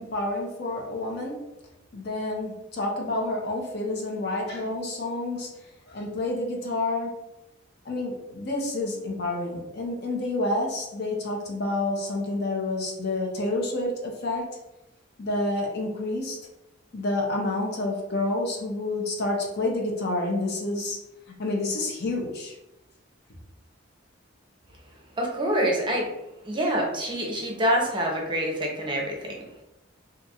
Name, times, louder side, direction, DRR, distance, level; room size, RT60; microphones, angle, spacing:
voice 1, 0.0-1.4 1.9-5.5 5.9-7.1 7.8-14.4 15.2-16.4 16.9-21.0 21.4-22.5, left 2 dB, 55° left, 0 dB, 0.8 m, -29 dB
voice 2, 25.2-26.1 26.4-29.4, right 1 dB, 25° right, -1 dB, 0.6 m, -26 dB
2.6 x 2.4 x 4.1 m, 0.94 s
head